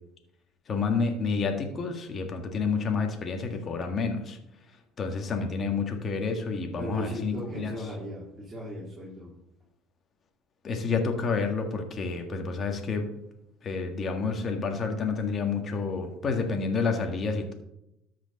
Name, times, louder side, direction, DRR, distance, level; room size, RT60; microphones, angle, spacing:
voice 1, 0.7-4.4 5.0-7.7 10.6-13.1 13.6-17.5, left 4 dB, 40° left, 4 dB, 1.8 m, -29 dB
voice 2, 6.8-9.3, equal, 25° right, -5 dB, 3.1 m, -37 dB
13.0 x 5.2 x 4.1 m, 0.86 s
supercardioid pair, 80°, 0 cm